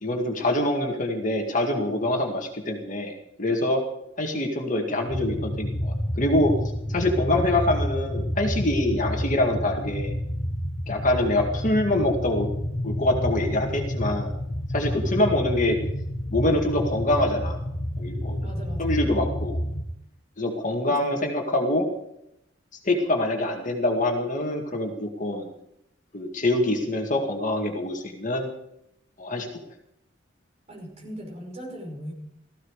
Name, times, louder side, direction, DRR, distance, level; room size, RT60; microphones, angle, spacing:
voice 1, 0.0-3.1 3.4-3.8 4.2-6.5 6.9-10.1 10.9-12.5 12.8-14.3 14.7-15.8 16.3-17.6 18.0-18.4 18.8-19.6 20.4-21.9 22.8-25.5 26.1-28.5 29.2-29.5, left 1 dB, 40° left, 2 dB, 2.1 m, -25 dB
sound 1, 5.1-19.8, equal, 85° left, 1.7 m, -29 dB
voice 2, 18.4-19.0 20.8-21.2 30.7-32.1, equal, 35° right, 0 dB, 5.4 m, -39 dB
16.0 x 15.0 x 4.9 m, 0.78 s
head